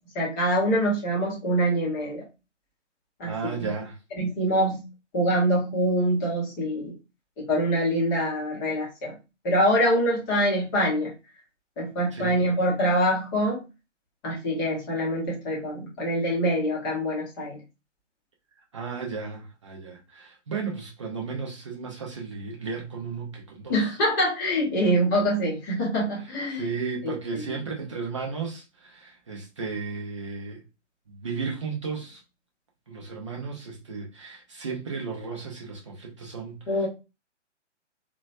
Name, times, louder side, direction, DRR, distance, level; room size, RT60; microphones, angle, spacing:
voice 1, 0.1-2.2 3.2-3.7 4.2-4.8 5.1-6.9 7.4-9.2 9.4-11.1 11.8-13.6 14.2-17.6 23.7-26.6 27.0-27.4 36.7-36.9, equal, 15° left, 0.8 m, -25 dB
voice 2, 3.2-4.0 12.1-12.4 18.7-23.9 26.5-30.6 31.1-32.2 32.9-36.9, right 5 dB, 25° right, 0.5 m, -34 dB
2.8 x 2.2 x 2.5 m
figure-of-eight pair, 130°, 37 cm